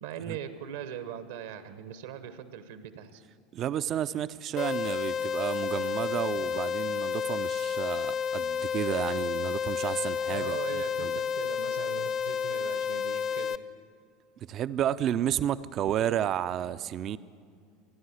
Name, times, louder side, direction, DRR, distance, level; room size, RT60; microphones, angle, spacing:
voice 1, 0.0-3.2 10.3-13.6, right 9 dB, 65° right, 12 dB, 1.1 m, -40 dB
voice 2, 3.5-11.2 14.4-17.2, right 10 dB, 40° right, 15 dB, 0.6 m, -31 dB
sound 1, 4.6-13.6, left 7 dB, 40° left, 0.6 m, -31 dB
28.0 x 11.0 x 8.3 m, 2.2 s
figure-of-eight pair, 75°, 0 cm